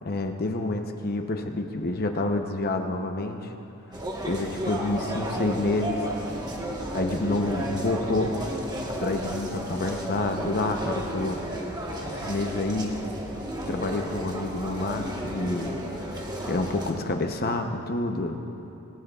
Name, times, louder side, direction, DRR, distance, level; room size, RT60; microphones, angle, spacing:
voice 1, 0.0-3.5 4.2-6.1 6.9-8.4 8.9-11.6 12.0-13.0 13.7-16.1 16.4-18.4, left 2 dB, 45° left, 5 dB, 0.8 m, -28 dB
sound 1, 3.9-16.9, right 1 dB, 20° right, 1.3 m, -33 dB
19.0 x 18.0 x 2.4 m, 3.0 s
head